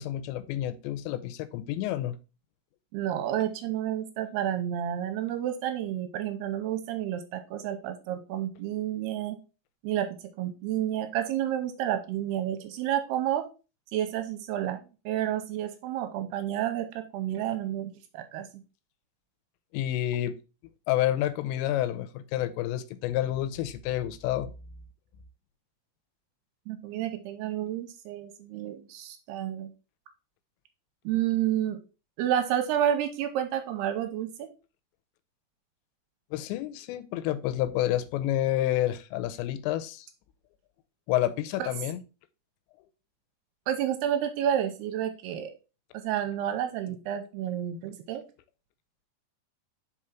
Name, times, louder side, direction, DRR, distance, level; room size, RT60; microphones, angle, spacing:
voice 1, 0.0-2.2 19.7-20.3 20.9-24.5 36.3-40.1 41.1-42.0, left 13 dB, 90° left, 2.9 m, -29 dB
voice 2, 2.9-9.4 9.8-10.1 10.4-13.5 13.9-14.8 15.1-18.6 26.7-29.7 31.1-31.8 32.2-34.5 41.6-41.7 43.7-45.5 46.0-48.2, right 11 dB, 80° right, 2.6 m, -30 dB
5.4 x 4.8 x 4.3 m
omnidirectional pair, 5.0 m